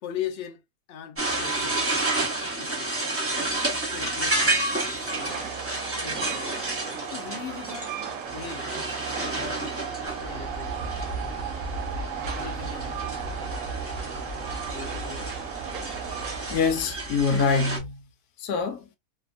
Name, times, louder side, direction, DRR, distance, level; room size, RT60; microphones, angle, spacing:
voice 1, 0.0-0.6 0.9-2.0 2.6-3.0 3.9-5.6 6.0-6.7 7.1-7.9 8.3-8.7 9.2-10.9 12.3-13.2 14.7-15.3, left 8 dB, 55° left, 0.8 m, -39 dB
sound 1, 1.2-17.8, right 2 dB, 10° right, 0.8 m, -31 dB
Train, 4.9-16.9, right 8 dB, 70° right, 0.9 m, -37 dB
sound 2, 10.1-17.8, right 3 dB, 35° right, 0.4 m, -37 dB
voice 2, 16.5-18.0 18.4-18.9, left 5 dB, 85° left, 1.1 m, -25 dB
2.8 x 2.2 x 2.5 m
omnidirectional pair, 1.6 m